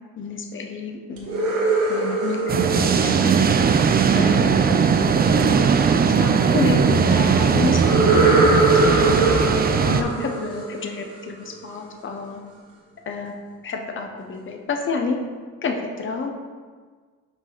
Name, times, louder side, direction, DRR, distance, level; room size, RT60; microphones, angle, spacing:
voice 1, 0.2-1.4 1.9-3.3 4.2-4.8 5.3-5.6 6.2-9.3 9.9-12.4 13.1-13.3 13.6-15.2 15.6-16.3, left 4 dB, 40° left, 2 dB, 1.0 m, -29 dB
sound 1, 1.2-4.1 7.8-11.5, right 3 dB, 70° right, 1.5 m, -22 dB
sound 2, 2.5-10.0, right 6 dB, 30° right, 0.5 m, -18 dB
6.1 x 4.9 x 4.0 m, 1.5 s
cardioid pair, 90°, 30 cm